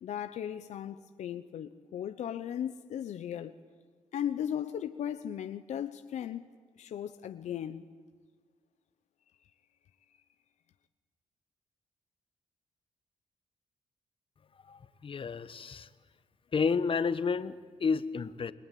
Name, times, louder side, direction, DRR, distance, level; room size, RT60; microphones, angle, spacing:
voice 1, 0.0-3.5 4.1-6.5 6.8-7.8, left 9 dB, 75° left, 1.0 m, -37 dB
voice 2, 14.7-15.9 16.5-18.5, left 5 dB, 45° left, 1.3 m, -31 dB
29.5 x 21.5 x 9.4 m
cardioid pair, 70°, 12 cm